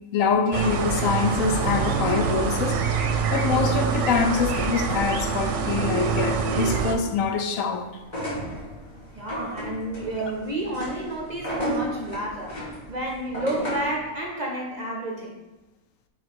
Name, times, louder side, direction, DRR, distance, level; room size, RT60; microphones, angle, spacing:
voice 1, 0.1-2.8 3.3-7.9, left 5 dB, 75° left, 1.0 m, -24 dB
sound 1, 0.5-6.9, right 6 dB, 70° right, 0.9 m, -25 dB
sound 2, 8.0-14.0, equal, 30° left, 2.1 m, -33 dB
voice 2, 9.1-15.4, right 1 dB, 40° right, 0.7 m, -31 dB
4.7 x 4.4 x 4.6 m
omnidirectional pair, 1.4 m